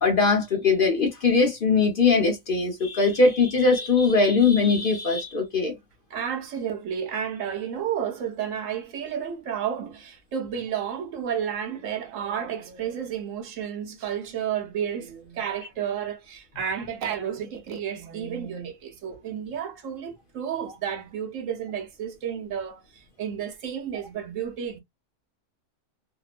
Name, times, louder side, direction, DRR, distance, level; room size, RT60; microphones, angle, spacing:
voice 1, 0.0-5.7, left 4 dB, 50° left, 0.8 m, -21 dB
voice 2, 6.1-24.8, right 8 dB, 70° right, 1.0 m, -31 dB
2.9 x 2.0 x 2.3 m
omnidirectional pair, 1.4 m